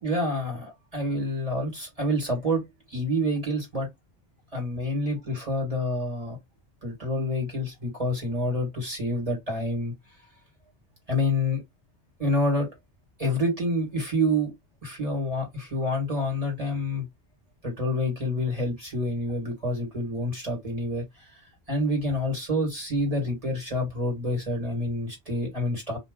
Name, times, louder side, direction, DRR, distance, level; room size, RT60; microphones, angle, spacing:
voice 1, 0.0-2.6 2.9-3.9 4.5-6.4 6.8-9.9 11.1-11.6 12.2-12.7 13.2-14.5 14.8-17.0 17.6-21.3 21.7-26.0, left 1 dB, 35° right, 1.6 m, -27 dB
2.5 x 2.3 x 3.6 m
omnidirectional pair, 1.1 m